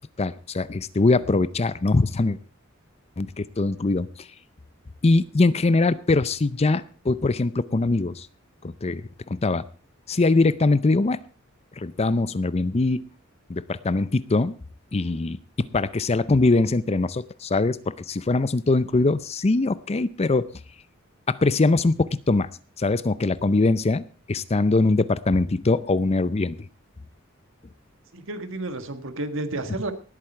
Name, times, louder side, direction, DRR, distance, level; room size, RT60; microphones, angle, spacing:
voice 1, 0.2-2.4 3.2-4.1 5.0-8.3 8.6-9.0 9.3-9.6 10.1-11.2 11.8-13.1 13.5-14.6 14.9-20.4 21.3-22.5 22.8-26.6, left 3 dB, 30° left, 16 dB, 0.5 m, -22 dB
voice 2, 28.1-29.9, right 2 dB, 65° right, 8 dB, 1.6 m, -31 dB
19.0 x 8.5 x 4.5 m, 0.38 s
head